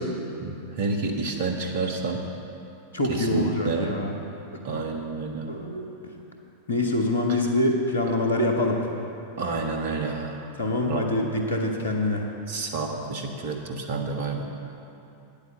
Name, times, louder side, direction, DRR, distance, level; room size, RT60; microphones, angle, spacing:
voice 1, 0.4-2.2 3.1-3.9 4.6-5.5 7.3-7.4 9.4-10.4 10.8-11.1 12.5-14.4, right 4 dB, 55° right, 2 dB, 1.4 m, -29 dB
voice 2, 2.9-4.1 5.5-5.8 6.7-8.8 10.6-12.3, left 1 dB, 70° left, 2 dB, 1.4 m, -25 dB
9.6 x 8.8 x 7.1 m, 2.8 s
figure-of-eight pair, 90°, 0 cm